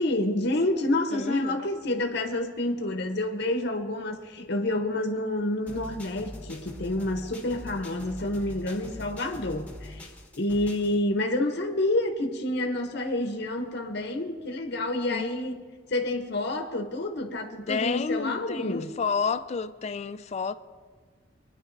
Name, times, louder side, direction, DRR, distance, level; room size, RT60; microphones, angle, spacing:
voice 1, 0.0-10.1 10.3-18.9, left 1 dB, 60° left, 0.8 m, -28 dB
voice 2, 1.1-1.6 15.1-15.3 17.7-20.5, left 5 dB, 35° left, 0.3 m, -30 dB
sound 1, 5.7-11.0, left 1 dB, 10° left, 1.1 m, -43 dB
22.0 x 10.0 x 2.6 m
head